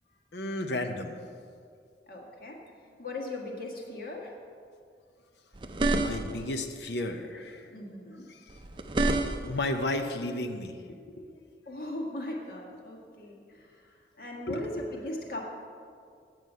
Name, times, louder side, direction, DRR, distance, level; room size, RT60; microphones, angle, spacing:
voice 1, 0.3-1.2 5.9-7.7 8.3-8.6 9.5-11.3 14.5-14.6, left 1 dB, 70° left, 6 dB, 0.7 m, -33 dB
voice 2, 2.1-2.6 3.0-4.3 7.7-8.2 11.7-13.8 14.2-15.4, left 1 dB, 50° left, -1 dB, 1.6 m, -38 dB
sound 1, 5.5-6.5 8.5-9.7, right 2 dB, 25° right, 0.5 m, -28 dB
9.4 x 7.7 x 5.5 m, 2.2 s
head